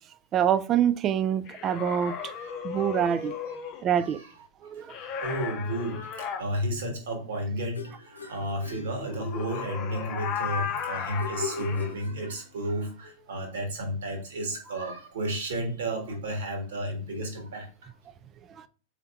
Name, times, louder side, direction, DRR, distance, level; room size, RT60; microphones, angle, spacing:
voice 1, 0.3-2.1 2.6-3.3 3.8-4.2 4.6-4.9 18.6-18.7, right 9 dB, 30° right, 0.3 m, -25 dB
sound 1, 1.5-3.9 4.9-6.4 9.0-11.9, left 7 dB, 35° left, 0.6 m, -35 dB
voice 2, 2.0-3.2 3.5-3.6 4.0-4.3 4.7-4.9 5.2-17.9, equal, 60° right, 1.4 m, -33 dB
sound 2, 7.7-9.7 11.2-12.7, left 5 dB, 80° left, 0.7 m, -40 dB
4.3 x 3.6 x 2.3 m
figure-of-eight pair, 90°, 0 cm